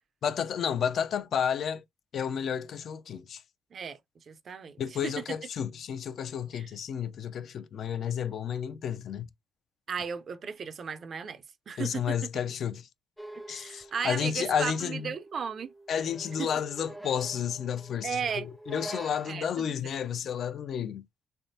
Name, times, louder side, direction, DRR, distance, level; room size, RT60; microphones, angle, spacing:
voice 1, 0.2-1.8 2.1-3.4 4.8-9.3 11.8-12.9 13.5-15.1 15.9-21.0, left 8 dB, 60° left, 0.5 m, -31 dB
voice 2, 4.3-5.2 6.5-6.7 9.9-12.3 13.5-15.7 16.4-16.5 18.0-18.5 19.2-19.9, right 6 dB, 50° right, 0.5 m, -35 dB
sound 1, 13.2-19.5, right 1 dB, ahead, 0.6 m, -46 dB
3.4 x 3.4 x 2.6 m
cardioid pair, 90°, 0 cm